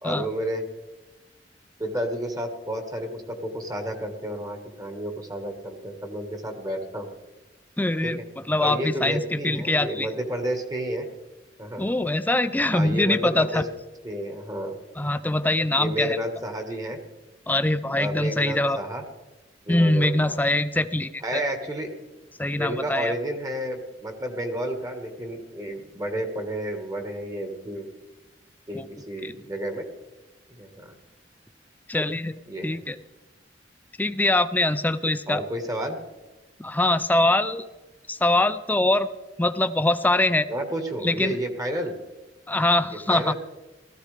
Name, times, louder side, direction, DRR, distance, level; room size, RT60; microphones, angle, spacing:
voice 1, 0.0-0.7 1.8-7.1 8.0-8.2 8.6-11.1 11.6-11.8 12.7-13.6 14.0-14.7 15.8-17.0 18.0-19.0 19.6-20.4 21.2-22.0 22.6-27.9 28.7-29.9 30.6-30.9 32.5-32.8 35.3-36.0 40.5-41.9 43.1-43.3, right 1 dB, 20° right, 5 dB, 1.4 m, -31 dB
voice 2, 7.8-8.2 8.5-10.1 11.8-13.6 15.0-16.2 17.5-18.8 19.7-21.4 22.4-23.1 28.7-28.9 29.2-29.3 31.9-32.3 32.6-33.0 34.0-35.4 36.6-37.6 38.1-39.1 39.4-40.5 41.0-41.4 42.5-43.3, left 1 dB, 10° left, 12 dB, 0.5 m, -23 dB
17.5 x 14.0 x 3.3 m, 1.1 s
head